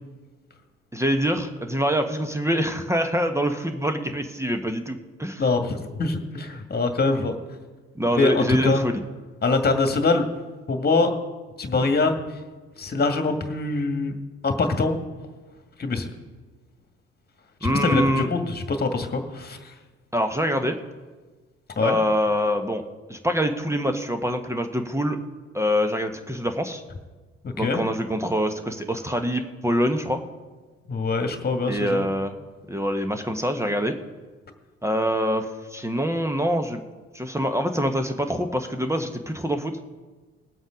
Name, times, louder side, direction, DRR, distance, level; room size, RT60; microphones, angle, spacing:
voice 1, 0.9-5.4 7.9-9.0 17.6-18.3 20.1-20.8 21.8-22.8 23.1-25.2 25.5-26.8 27.5-30.2 31.7-32.3 32.7-33.9 34.8-36.8 37.1-39.8, equal, 10° right, 7 dB, 1.2 m, -25 dB
voice 2, 5.4-7.4 8.2-8.8 9.4-10.3 10.7-11.2 11.6-12.1 12.8-14.2 14.4-15.0 15.8-16.1 17.6-19.7 21.8-22.0 27.4-27.8 30.9-32.0, left 3 dB, 30° left, 6 dB, 1.9 m, -23 dB
20.0 x 7.9 x 5.1 m, 1.3 s
figure-of-eight pair, 50°, 32 cm